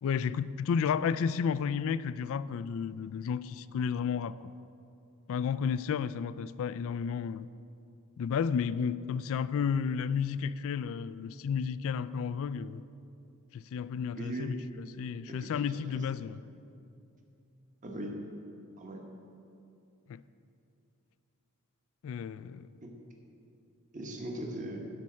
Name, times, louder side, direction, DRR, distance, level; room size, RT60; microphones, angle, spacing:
voice 1, 0.0-4.4 5.3-7.5 8.2-12.8 13.5-16.4 20.1-20.2 22.0-22.7, left 6 dB, 65° left, 0.3 m, -32 dB
voice 2, 14.2-14.5 15.3-15.6 15.9-16.0 17.8-18.1 18.8-19.0 22.8-22.9 23.9-24.8, right 1 dB, 35° right, 1.2 m, -39 dB
10.5 x 5.5 x 7.4 m
head